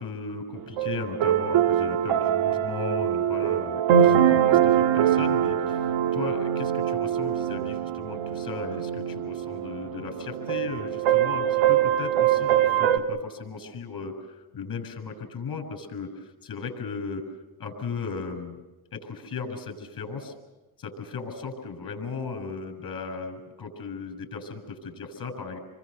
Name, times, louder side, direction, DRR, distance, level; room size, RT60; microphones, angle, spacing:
voice 1, 0.0-17.2 17.6-18.6 18.9-20.3 20.8-25.6, left 4 dB, 45° left, 7 dB, 7.4 m, -36 dB
sound 1, 0.8-13.0, right 10 dB, 90° right, 1.7 m, -23 dB
29.5 x 23.0 x 6.9 m, 1.0 s
cardioid pair, 105°, 47 cm